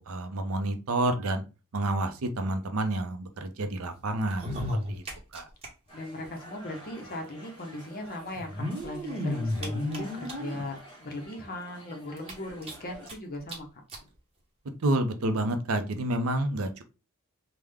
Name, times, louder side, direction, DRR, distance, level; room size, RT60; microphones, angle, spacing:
voice 1, 0.0-1.4 1.7-4.5 4.9-5.0 5.3-5.4 14.8-16.8, right 1 dB, 75° right, 7 dB, 0.6 m, -29 dB
sound 1, 4.2-5.7 5.9-6.0 6.2-6.3 7.4-7.5 8.3-10.6 11.2-11.3 11.7-11.8 12.2-13.1 13.5-13.6 13.9-14.0 14.8-14.9, left 1 dB, 30° right, 0.9 m, -33 dB
voice 2, 5.9-13.7, left 1 dB, 45° left, 3 dB, 0.8 m, -38 dB
sound 2, 5.9-13.1, right 1 dB, 25° left, 1.5 m, -49 dB
3.5 x 2.2 x 3.4 m, 0.30 s
head